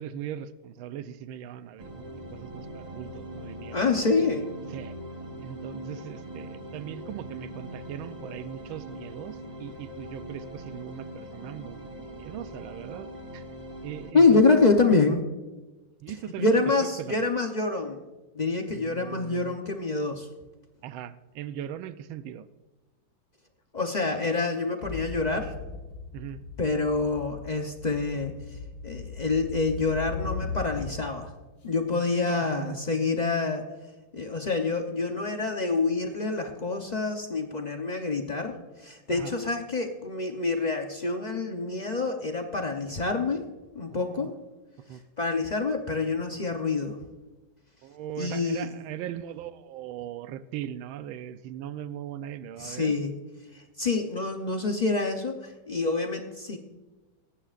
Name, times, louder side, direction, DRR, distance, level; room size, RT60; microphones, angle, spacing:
voice 1, 0.0-3.8 4.7-4.9 5.4-13.4 13.8-14.6 16.0-16.5 16.8-17.2 18.7-19.6 20.8-22.5 26.1-26.5 31.9-32.8 39.1-39.3 43.9-44.3 44.9-45.0 47.8-52.9, right 10 dB, 85° right, 12 dB, 1.4 m, -39 dB
sound 1, 1.8-14.1, right 1 dB, 25° right, 1.2 m, -41 dB
voice 2, 3.7-4.5 14.1-15.2 16.4-18.0 18.3-20.3 23.7-25.5 26.6-28.6 28.8-31.3 31.6-33.7 34.1-43.5 43.7-44.3 45.2-47.0 48.2-48.7 52.6-53.1 53.5-56.6, left 3 dB, 85° left, 4 dB, 0.3 m, -26 dB
sound 2, 24.8-31.2, left 5 dB, 45° left, 2.0 m, -38 dB
17.5 x 15.5 x 2.5 m, 1.2 s
omnidirectional pair, 2.1 m